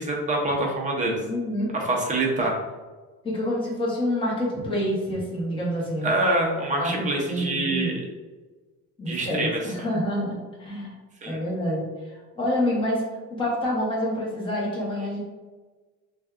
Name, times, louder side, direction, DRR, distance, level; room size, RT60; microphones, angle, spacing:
voice 1, 0.0-1.2 1.7-2.6 6.0-8.0 9.1-9.6 11.2-11.4, right 2 dB, 20° right, -1 dB, 0.6 m, -25 dB
voice 2, 1.3-1.7 3.2-6.1 6.8-8.0 9.0-10.9 11.3-13.0 13.3-15.2, left 1 dB, 15° left, -5 dB, 1.1 m, -27 dB
6.0 x 2.4 x 2.4 m, 1.3 s
cardioid pair, 160°, 37 cm